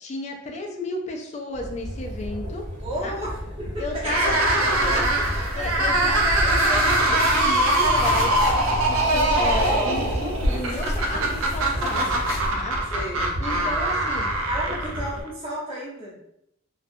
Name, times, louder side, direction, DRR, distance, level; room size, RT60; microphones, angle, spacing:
voice 1, 0.0-2.6 3.0-3.1 3.8-4.4 5.5-8.4 8.9-12.8 13.4-14.3 14.7-14.8, left 2 dB, 35° left, 1 dB, 0.4 m, -33 dB
sound 1, 1.5-15.2, equal, 60° right, 1.0 m, -34 dB
voice 2, 2.8-5.4 9.5-10.0 12.9-13.3 14.4-16.1, right 1 dB, 25° right, -9 dB, 0.9 m, -32 dB
sound 2, 4.0-15.3, right 1 dB, 80° right, 0.5 m, -23 dB
sound 3, 4.6-12.5, left 1 dB, 65° left, 0.7 m, -31 dB
2.3 x 2.3 x 2.6 m, 0.77 s
head